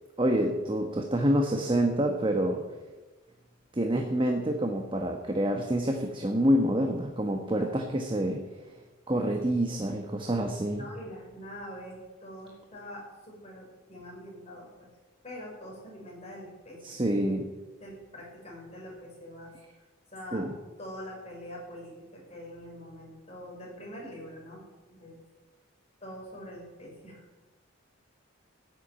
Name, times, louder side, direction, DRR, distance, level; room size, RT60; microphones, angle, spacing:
voice 1, 0.2-2.6 3.7-8.4 9.1-10.9 16.8-17.5 20.3-20.5, right 1 dB, 25° right, 3 dB, 1.2 m, -27 dB
voice 2, 10.7-14.9 15.2-17.0 17.8-19.5 20.1-20.5 20.8-25.2 26.0-27.3, equal, 30° left, -2 dB, 6.0 m, -44 dB
14.5 x 8.2 x 9.4 m, 1.2 s
head